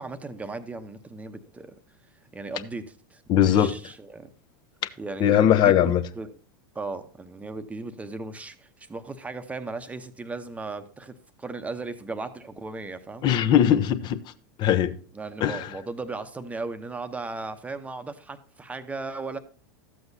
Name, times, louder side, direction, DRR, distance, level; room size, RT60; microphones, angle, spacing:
voice 1, 0.0-1.8 2.3-4.3 5.0-6.3 6.7-13.3 15.1-19.4, right 3 dB, 10° right, 0.8 m, -36 dB
voice 2, 3.3-3.8 5.2-6.0 13.2-14.2 14.6-14.9 15.4-15.7, left 10 dB, 40° left, 0.8 m, -20 dB
13.0 x 7.9 x 2.7 m
hypercardioid pair, 110°, 11 cm